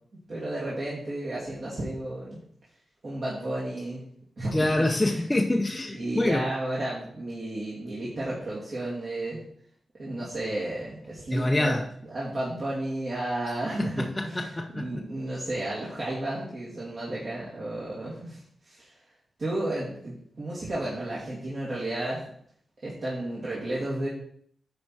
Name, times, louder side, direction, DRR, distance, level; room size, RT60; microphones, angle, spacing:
voice 1, 0.3-2.4 3.0-4.0 4.4-5.1 5.9-9.4 10.0-11.7 12.1-14.4 14.7-18.4 18.6-18.9 19.4-22.2 22.8-24.1, right 1 dB, 50° right, -8 dB, 2.6 m, -32 dB
voice 2, 4.5-6.5 11.3-11.9 13.8-15.0, left 1 dB, 15° left, 1 dB, 0.6 m, -26 dB
9.8 x 4.4 x 4.7 m, 0.64 s
wide cardioid pair, 120°, 0 cm